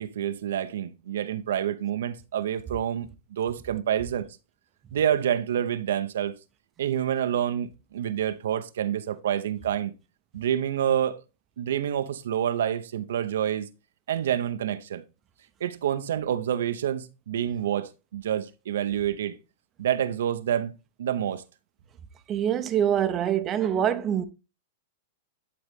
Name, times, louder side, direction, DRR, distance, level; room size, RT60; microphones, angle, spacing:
voice 1, 0.0-4.2 4.9-6.3 6.8-9.9 10.3-11.2 11.6-13.7 14.1-15.0 15.6-19.4 19.8-20.7 21.0-21.4, right 10 dB, 80° right, 0.7 m, -28 dB
voice 2, 22.3-24.2, right 9 dB, 25° right, 0.7 m, -25 dB
11.0 x 3.9 x 3.6 m
hypercardioid pair, 135°, 0 cm